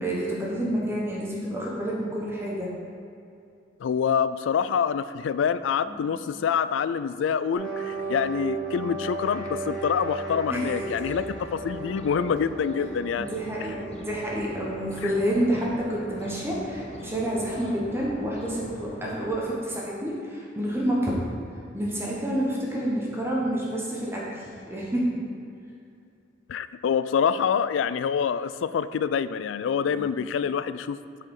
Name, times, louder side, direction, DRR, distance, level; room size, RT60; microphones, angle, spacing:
voice 1, 0.0-2.7 5.9-6.0 10.5-10.7 13.2-21.2 21.7-25.1 29.9-30.1, right 1 dB, 15° right, -4 dB, 1.2 m, -29 dB
voice 2, 3.8-13.3 15.0-15.1 26.5-31.0, left 7 dB, 85° left, 15 dB, 0.3 m, -26 dB
sound 1, 7.5-19.6, right 3 dB, 5° left, 2.0 m, -37 dB
sound 2, 10.6-19.4, left 1 dB, 35° left, 0.6 m, -42 dB
8.7 x 4.8 x 4.8 m, 2.5 s
head